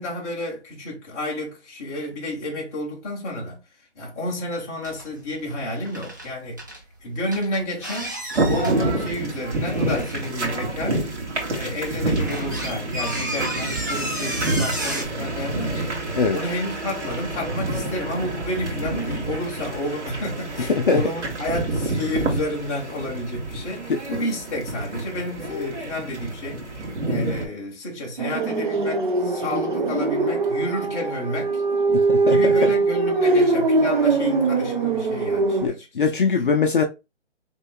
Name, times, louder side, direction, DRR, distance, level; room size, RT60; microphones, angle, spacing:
voice 1, 0.0-3.6 3.9-6.7 7.0-11.1 11.5-31.6 32.3-35.9, left 1 dB, 15° left, 1.1 m, -30 dB
sound 1, 4.8-5.2 5.4-6.8 7.3-8.8 9.4-10.6 11.1-11.2 11.7-15.0, right 1 dB, 15° right, 0.5 m, -32 dB
sound 2, 8.3-27.5, right 2 dB, 75° right, 2.5 m, -28 dB
voice 2, 20.7-21.0 23.9-24.0 31.9-32.7 33.2-33.3 35.6-36.8, left 5 dB, 45° left, 0.6 m, -22 dB
sound 3, 28.2-35.7, right 3 dB, 45° right, 0.9 m, -21 dB
5.3 x 3.7 x 2.3 m
hypercardioid pair, 165°, 35 cm